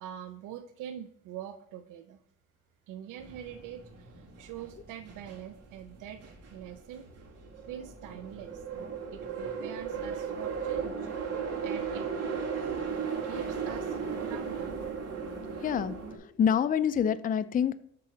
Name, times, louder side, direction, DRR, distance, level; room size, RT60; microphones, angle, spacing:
voice 1, 0.0-2.2 2.9-6.2 6.5-7.1 7.7-8.6 9.1-11.1 11.4-12.1 13.2-14.7, right 10 dB, 90° right, 0.5 m, -44 dB
sound 1, 3.2-16.2, right 6 dB, 55° right, 2.2 m, -36 dB
voice 2, 15.6-17.7, left 8 dB, 30° left, 0.4 m, -27 dB
7.5 x 3.8 x 5.8 m
cardioid pair, 90°, 30 cm